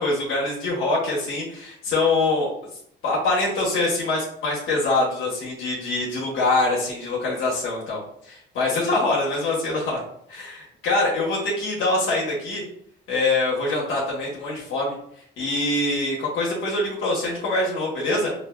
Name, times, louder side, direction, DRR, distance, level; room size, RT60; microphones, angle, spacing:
voice 1, 0.0-2.5 3.0-10.0 10.3-12.6 13.1-14.9 15.4-18.3, left 2 dB, 90° left, -5 dB, 1.1 m, -24 dB
5.1 x 2.5 x 2.3 m, 0.67 s
cardioid pair, 90°, 20 cm